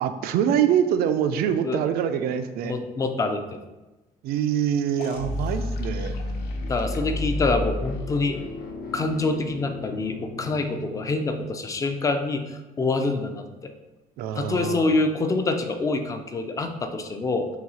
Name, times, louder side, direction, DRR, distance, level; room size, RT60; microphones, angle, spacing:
voice 1, 0.0-2.7 4.2-6.2 14.2-14.9, right 9 dB, 80° right, 9 dB, 0.4 m, -24 dB
voice 2, 2.6-3.6 6.7-8.4 8.9-13.7 14.4-17.5, left 3 dB, 20° left, 7 dB, 0.3 m, -26 dB
sound 1, 5.0-11.6, left 2 dB, 85° left, 0.6 m, -32 dB
4.0 x 2.7 x 4.1 m, 1.1 s
cardioid pair, 160°, 16 cm